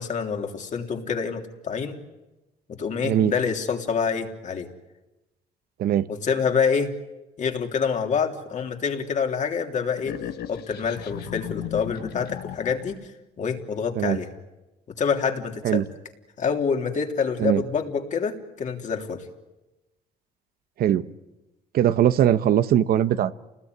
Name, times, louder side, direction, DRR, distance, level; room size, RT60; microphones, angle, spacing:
voice 1, 0.0-2.0 2.7-4.7 6.1-6.9 7.4-10.2 10.5-13.0 13.4-14.3 15.0-15.9 16.4-19.2, left 6 dB, 45° left, 3 dB, 3.3 m, -26 dB
sound 1, 10.0-13.1, left 12 dB, 70° left, 1.4 m, -36 dB
voice 2, 21.7-23.3, right 11 dB, 65° right, 12 dB, 1.0 m, -20 dB
29.5 x 19.5 x 9.6 m, 1.0 s
cardioid pair, 110°, 17 cm